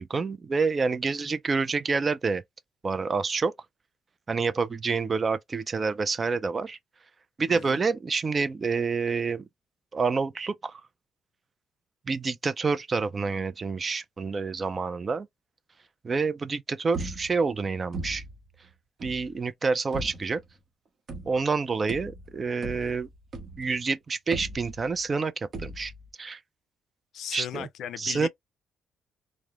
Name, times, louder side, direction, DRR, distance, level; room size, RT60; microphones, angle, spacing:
voice 1, 0.0-2.4 2.8-3.5 4.3-6.8 7.4-9.5 9.9-10.8 12.1-15.3 16.0-18.2 19.0-20.4 21.3-23.1 23.6-25.9 26.2-26.4 27.3-27.7 28.0-28.3, right 4 dB, 35° right, 0.3 m, -28 dB
voice 2, 7.5-7.8 27.1-28.3, left 10 dB, 75° left, 0.3 m, -37 dB
sound 1, 16.9-17.6 17.9-18.5 19.0-19.4 19.9-20.4 21.1-21.6 21.9-23.8 24.3-25.1 25.5-26.1, right 2 dB, 50° right, 0.8 m, -38 dB
2.9 x 2.0 x 2.3 m
cardioid pair, 90°, 0 cm